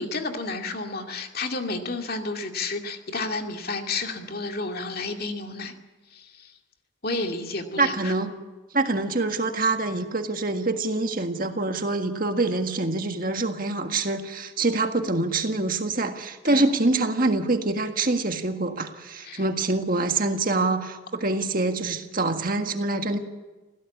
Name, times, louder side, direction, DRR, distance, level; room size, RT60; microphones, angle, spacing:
voice 1, 0.0-5.7 6.1-6.5 7.0-8.1 16.5-16.7 19.2-19.4, left 3 dB, 45° left, 4 dB, 2.3 m, -31 dB
voice 2, 7.8-8.3 8.7-23.2, right 2 dB, 45° right, 6 dB, 1.7 m, -25 dB
26.0 x 16.5 x 8.5 m, 1.2 s
head